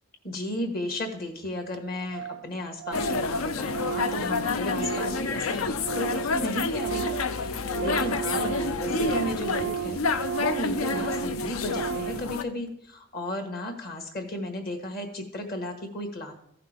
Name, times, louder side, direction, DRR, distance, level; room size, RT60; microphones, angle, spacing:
voice 1, 0.2-10.0 10.4-16.3, left 1 dB, 45° left, 4 dB, 1.5 m, -34 dB
Organ, 1.1-1.2 1.4-1.5 1.7-1.8 2.1-2.5 2.8-6.4 6.6-12.3, right 9 dB, 50° right, 0.3 m, -34 dB
sound 1, 2.9-12.4, left 4 dB, 80° left, 0.5 m, -29 dB
15.0 x 5.8 x 3.5 m, 0.70 s
head